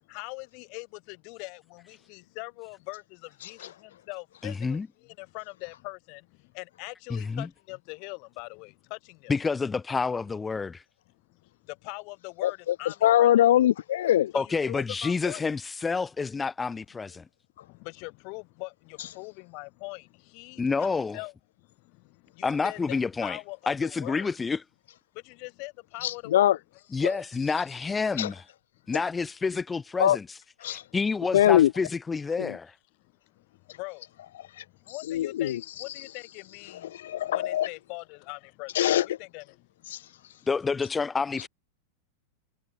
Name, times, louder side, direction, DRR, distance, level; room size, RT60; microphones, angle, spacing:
voice 1, 0.1-9.3 11.3-13.5 14.3-15.4 17.6-24.4 25.1-26.6 33.3-34.4 34.7-38.8 39.0-40.2, left 34 dB, 45° left, 2.3 m, -42 dB
voice 2, 3.4-3.7 12.4-14.3 19.0-19.1 26.0-26.6 28.2-28.3 30.0-30.2 30.6-30.9 31.3-31.7 32.4-32.5 33.7-33.8 34.5-36.0 36.7-37.7 38.7-39.2 39.9-40.4, left 12 dB, 60° left, 0.3 m, -24 dB
voice 3, 4.4-4.9 7.1-7.5 9.3-10.8 14.3-17.2 20.6-21.2 22.4-23.4 23.7-24.6 26.9-28.3 28.9-30.2 30.7-32.7 40.5-41.5, left 4 dB, 15° left, 1.2 m, -28 dB
figure-of-eight pair, 90°, 0 cm